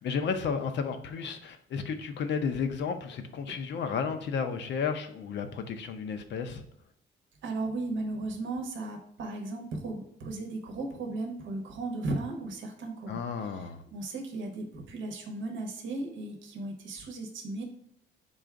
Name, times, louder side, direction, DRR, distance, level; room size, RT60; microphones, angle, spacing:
voice 1, 0.0-6.6 13.1-13.8, left 6 dB, 65° left, 7 dB, 0.6 m, -32 dB
voice 2, 7.4-17.6, right 2 dB, 75° right, 4 dB, 0.8 m, -36 dB
3.9 x 2.4 x 4.6 m, 0.71 s
cardioid pair, 90°, 20 cm